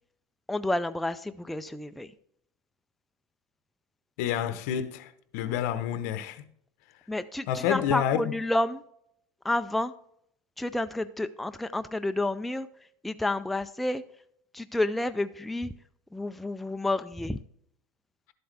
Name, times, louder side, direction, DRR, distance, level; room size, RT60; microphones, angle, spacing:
voice 1, 0.5-2.1 7.1-8.8 9.4-9.9 10.6-14.0 14.5-15.7 16.1-17.4, left 2 dB, ahead, 0.3 m, -30 dB
voice 2, 4.2-6.4 7.5-8.3, left 10 dB, 70° left, 0.9 m, -29 dB
12.0 x 7.8 x 3.4 m
supercardioid pair, 145°, 9 cm